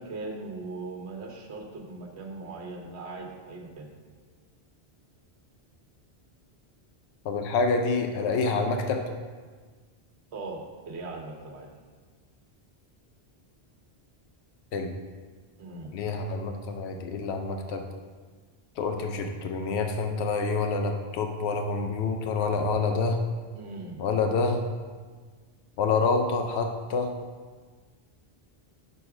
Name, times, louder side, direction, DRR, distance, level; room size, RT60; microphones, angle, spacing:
voice 1, 0.0-3.9 10.3-11.7 15.6-15.9 23.5-24.0, right 3 dB, 85° right, 2 dB, 1.2 m, -39 dB
voice 2, 7.2-9.0 14.7-14.9 15.9-17.8 18.8-23.2 24.0-24.6 25.8-27.1, left 4 dB, 85° left, 4 dB, 0.9 m, -27 dB
6.2 x 4.6 x 4.8 m, 1.5 s
omnidirectional pair, 1.1 m